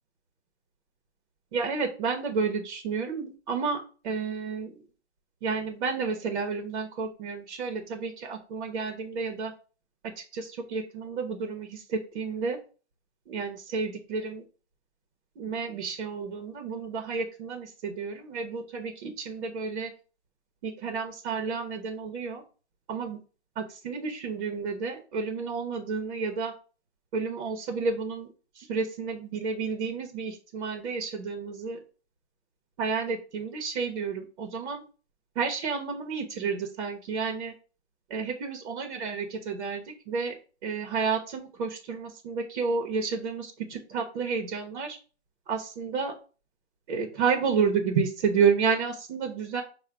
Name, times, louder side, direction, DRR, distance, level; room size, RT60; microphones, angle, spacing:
voice 1, 1.5-3.8 4.0-4.7 5.4-9.5 10.2-12.6 13.3-14.4 15.4-19.9 20.6-22.4 22.9-23.2 23.6-26.5 27.1-28.3 28.5-31.8 32.8-34.8 35.4-37.5 38.1-40.3 40.6-45.0 45.5-46.1 46.9-49.6, right 5 dB, 45° right, 4 dB, 0.9 m, -30 dB
4.7 x 2.2 x 4.5 m, 0.37 s
hypercardioid pair, 130°, 35 cm